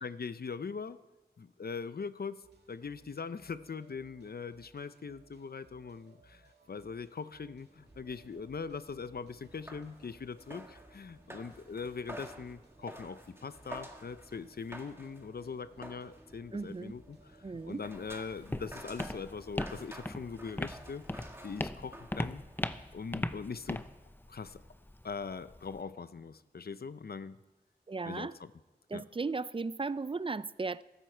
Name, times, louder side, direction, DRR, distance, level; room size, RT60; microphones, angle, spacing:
voice 1, 0.0-1.0 1.4-2.4 2.7-22.4 22.9-23.8 24.3-24.6 25.0-27.4 28.0-28.5 28.9-29.0, left 5 dB, 65° left, 14 dB, 0.6 m, -41 dB
sound 1, 2.4-20.9, right 3 dB, 75° right, 2.1 m, -64 dB
sound 2, 7.7-22.6, equal, 15° right, 1.7 m, -51 dB
voice 2, 16.5-16.9 17.4-17.8 27.9-28.3 28.9-30.8, right 4 dB, 30° right, 17 dB, 0.4 m, -36 dB
Walk footsteps, 17.8-25.8, left 1 dB, 10° left, 0.6 m, -39 dB
15.0 x 13.0 x 4.5 m, 1.2 s
wide cardioid pair, 65°, 17 cm